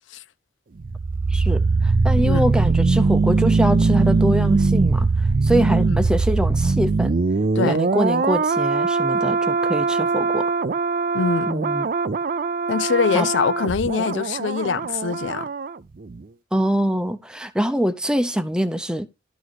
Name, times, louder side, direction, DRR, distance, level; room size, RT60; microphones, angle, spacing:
sound 1, 0.8-15.8 16.0-16.2, right 4 dB, 50° right, 0.4 m, -21 dB
voice 1, 1.3-5.1 5.4-7.1 7.6-10.5 11.5-11.9 13.1-13.3 16.5-19.1, equal, 5° right, 0.6 m, -24 dB
voice 2, 11.1-11.5 12.7-15.5, left 5 dB, 90° left, 0.5 m, -23 dB
12.0 x 4.0 x 4.7 m
head